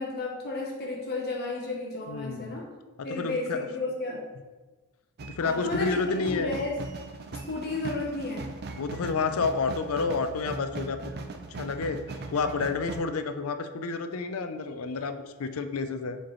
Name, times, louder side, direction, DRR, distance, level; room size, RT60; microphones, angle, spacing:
voice 1, 0.0-2.7 3.0-4.2 5.4-6.8 7.3-8.5, left 2 dB, 45° left, -1 dB, 0.8 m, -32 dB
voice 2, 2.1-2.6 3.0-3.7 5.2-6.5 8.7-11.3 11.6-16.2, left 4 dB, 70° left, 9 dB, 0.5 m, -30 dB
sound 1, 5.2-13.0, right 3 dB, 45° right, 0.5 m, -39 dB
7.2 x 4.4 x 3.1 m, 1.2 s
head